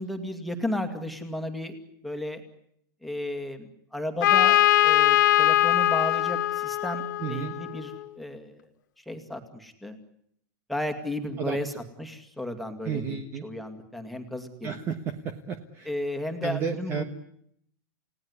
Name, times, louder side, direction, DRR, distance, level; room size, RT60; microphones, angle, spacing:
voice 1, 0.0-1.7 2.0-2.4 3.0-4.6 4.8-8.6 9.1-10.0 10.7-11.7 12.0-14.7 15.9-17.0, left 1 dB, ahead, 6 dB, 2.3 m, -33 dB
Trumpet, 4.2-7.9, left 14 dB, 65° left, 1.4 m, -22 dB
voice 2, 7.2-7.5 11.4-11.6 12.8-13.5 14.6-15.9 16.4-17.0, right 7 dB, 25° right, 9 dB, 1.3 m, -32 dB
30.0 x 17.5 x 9.7 m, 0.71 s
supercardioid pair, 170°, 11 cm